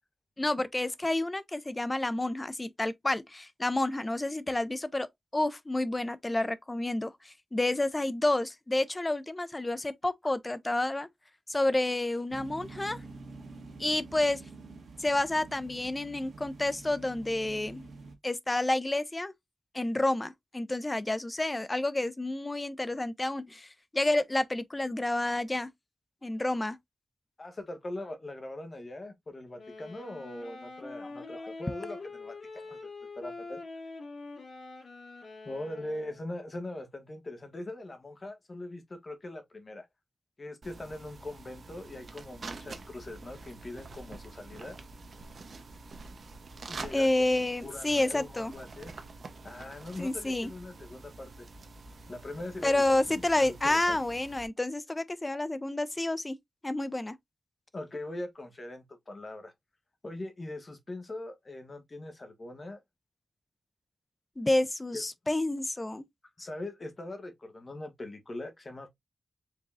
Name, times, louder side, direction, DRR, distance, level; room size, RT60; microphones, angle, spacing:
voice 1, 0.4-5.1 5.3-11.1 11.5-13.0 13.8-14.4 15.0-17.9 18.2-19.3 19.7-25.7 26.2-26.8 46.9-48.5 50.0-50.5 52.6-56.4 56.6-57.1 64.4-66.1, left 2 dB, 20° left, 0.6 m, -29 dB
sound 1, 12.3-18.2, right 3 dB, 75° right, 1.3 m, -47 dB
voice 2, 27.4-32.8 33.1-33.6 35.4-39.9 40.4-44.8 46.7-48.9 49.4-51.5 52.1-54.0 57.7-59.5 60.0-62.8 64.9-65.0 66.4-68.9, left 1 dB, 35° left, 1.4 m, -41 dB
sound 2, 29.5-36.3, left 3 dB, 70° left, 2.2 m, -44 dB
sound 3, 40.6-54.5, right 3 dB, 60° right, 0.9 m, -47 dB
4.8 x 3.7 x 2.3 m
wide cardioid pair, 120°, 0 cm